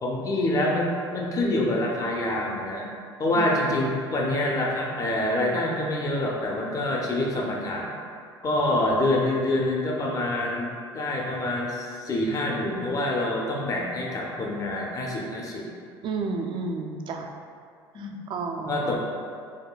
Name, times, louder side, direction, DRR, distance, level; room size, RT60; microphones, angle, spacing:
voice 1, 0.0-2.9 3.2-7.9 8.4-15.6 17.9-18.2 18.7-19.1, left 1 dB, 25° left, -1 dB, 0.5 m, -26 dB
voice 2, 16.0-17.3 17.9-18.9, right 4 dB, 40° right, 3 dB, 0.4 m, -31 dB
4.8 x 2.2 x 2.2 m, 2.3 s
hypercardioid pair, 65°, 13 cm